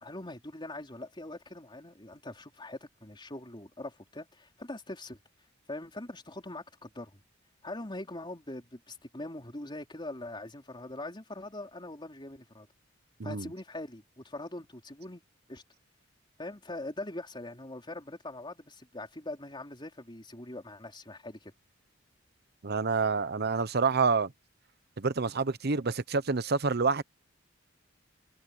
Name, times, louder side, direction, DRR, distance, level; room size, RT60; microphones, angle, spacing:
voice 1, 0.0-5.2 5.7-7.2 7.6-12.7 13.2-15.2 15.5-15.6 16.4-21.5, left 2 dB, 25° left, 4.0 m, -42 dB
voice 2, 13.2-13.5 22.6-24.3 25.0-27.0, right 4 dB, 55° right, 0.9 m, -28 dB
head